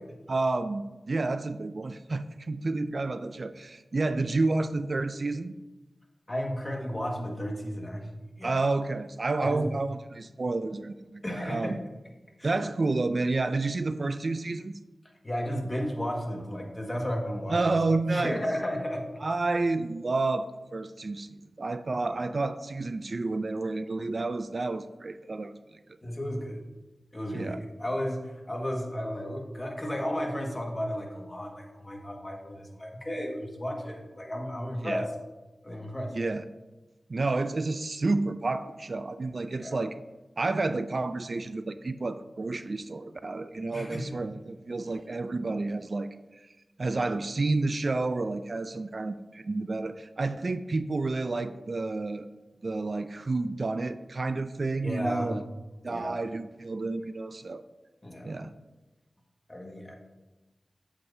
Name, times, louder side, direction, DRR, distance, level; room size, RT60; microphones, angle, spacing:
voice 1, 0.3-5.5 8.4-11.8 12.4-14.7 17.5-18.4 19.2-25.6 27.3-27.6 34.8-35.0 36.1-36.4 37.1-40.0 40.4-46.5 46.8-52.3 52.6-55.4 55.8-57.6 58.2-58.5, right 3 dB, 60° right, 12 dB, 0.3 m, -30 dB
voice 2, 6.3-8.6 9.4-9.7 11.2-11.8 12.4-12.6 15.2-17.6 18.1-19.0 22.1-22.2 26.0-26.6 27.1-35.0 35.6-36.1 39.6-39.8 43.7-44.1 54.8-55.4 55.9-56.1 58.0-58.3 59.5-60.0, equal, 25° left, 1 dB, 1.6 m, -33 dB
8.5 x 7.2 x 2.7 m, 1.1 s
cardioid pair, 45°, 0 cm